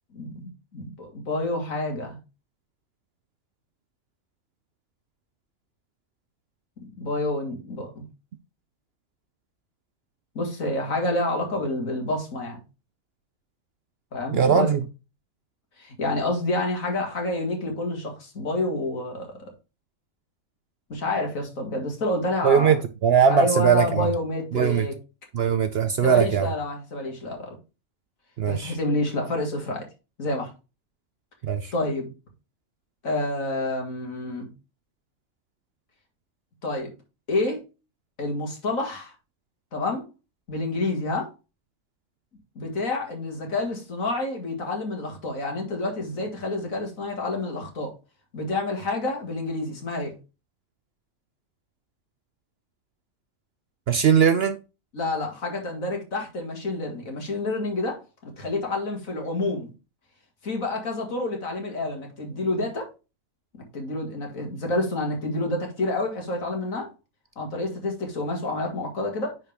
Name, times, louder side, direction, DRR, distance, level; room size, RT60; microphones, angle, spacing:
voice 1, 0.1-2.2 6.8-8.0 10.3-12.6 14.1-14.7 15.8-19.5 20.9-22.7 23.3-24.9 26.0-27.5 28.5-29.9 30.2-30.5 31.7-32.1 33.0-34.5 36.6-36.9 37.3-37.6 38.2-39.1 39.7-40.0 40.5-41.3 42.6-47.9 48.3-50.1 54.9-59.7 60.4-62.9 63.5-66.9 67.4-69.4, left 2 dB, 70° left, 2.5 m, -28 dB
voice 2, 14.3-14.8 22.4-24.1 24.5-24.9 25.3-26.5 28.4-28.8 31.4-31.7 53.9-54.6, right 7 dB, 60° right, 0.7 m, -20 dB
9.7 x 4.3 x 3.4 m
omnidirectional pair, 1.4 m